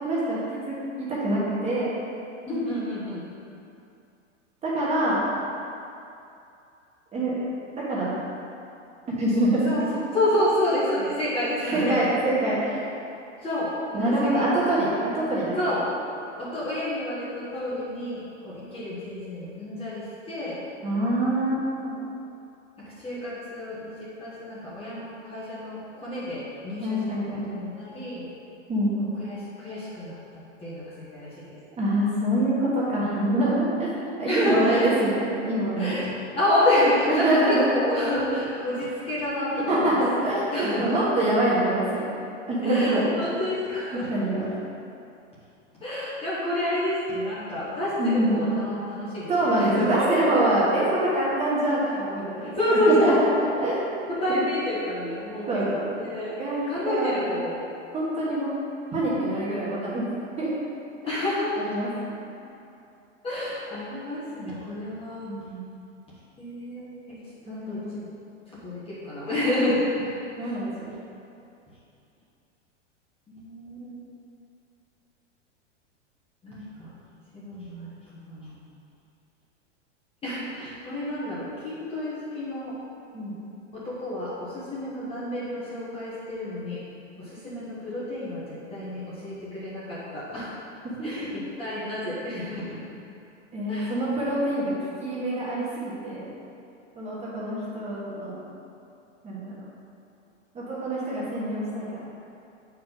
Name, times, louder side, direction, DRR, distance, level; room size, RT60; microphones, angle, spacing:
voice 1, 0.0-1.9 4.6-5.2 7.1-7.3 7.8-8.1 9.1-9.6 11.7-12.6 13.9-15.5 20.8-22.1 26.8-27.5 28.7-29.0 31.8-36.0 37.1-37.6 39.5-42.1 42.5-43.0 44.1-44.5 48.0-48.3 49.3-53.1 53.6-54.4 55.5-55.9 56.4-57.3 57.9-58.5 58.9-60.0 60.4-60.5 61.6-62.5 65.2-65.6 67.5-67.9 69.2-69.4 70.4-70.9 83.1-83.3 91.0-91.3 93.5-94.7 95.0-95.7 96.0-96.3 96.9-98.4 99.2-99.5 100.5-101.8, right 1 dB, 15° right, -8 dB, 1.5 m, -25 dB
voice 2, 2.5-3.2 9.6-9.8 10.1-12.0 13.4-14.8 15.6-15.9 16.4-20.6 22.8-27.2 27.5-28.3 29.3-30.1 30.6-31.5 34.2-35.1 35.8-36.1 36.3-40.0 40.3-41.0 42.6-44.1 45.8-49.3 49.6-50.1 52.4-53.7 54.1-56.4 56.7-57.6 61.1-61.6 63.2-65.3 66.4-67.2 67.5-68.1 68.5-70.1 73.3-74.1 76.4-76.9 77.3-77.9 78.3-78.6 80.2-82.8 83.7-86.8 87.2-90.6 91.0-92.8 93.7-93.9, left 1 dB, 15° left, -9 dB, 1.3 m, -29 dB
7.3 x 4.6 x 3.9 m, 2.6 s
supercardioid pair, 145°, 37 cm